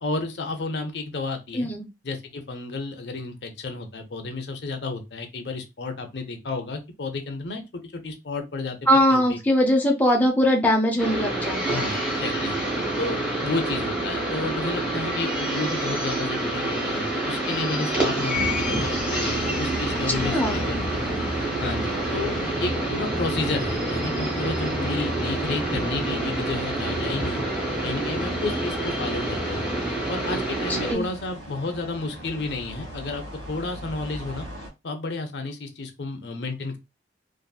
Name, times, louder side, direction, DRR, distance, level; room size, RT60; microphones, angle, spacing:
voice 1, 0.0-1.7 2.0-8.8 9.1-9.4 11.6-12.6 13.0-21.0 21.6-27.4 27.8-29.7 30.1-34.5 34.8-36.8, left 3 dB, 70° left, 5 dB, 0.6 m, -31 dB
voice 2, 1.5-1.9 8.9-11.8 20.2-20.6 30.8-31.1, equal, 10° left, 0 dB, 0.5 m, -21 dB
sound 1, 11.0-30.9, right 1 dB, 5° right, 1.0 m, -27 dB
sound 2, 18.3-34.7, right 1 dB, 80° right, 1.3 m, -37 dB
2.6 x 2.6 x 2.3 m, 0.24 s
head